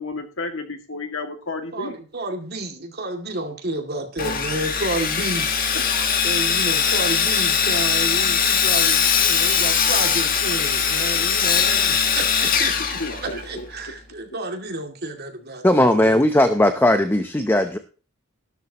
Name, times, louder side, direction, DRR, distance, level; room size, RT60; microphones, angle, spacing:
voice 1, 0.0-1.9 5.7-6.1 13.0-13.7, left 3 dB, 70° left, 4 dB, 2.2 m, -32 dB
voice 2, 1.7-5.5 6.2-16.2, right 2 dB, 50° right, 3 dB, 2.5 m, -30 dB
Sawing, 4.2-13.6, left 7 dB, 45° left, 1.5 m, -21 dB
voice 3, 15.6-17.8, left 1 dB, 10° left, 8 dB, 0.7 m, -17 dB
14.0 x 12.0 x 3.0 m, 0.36 s
head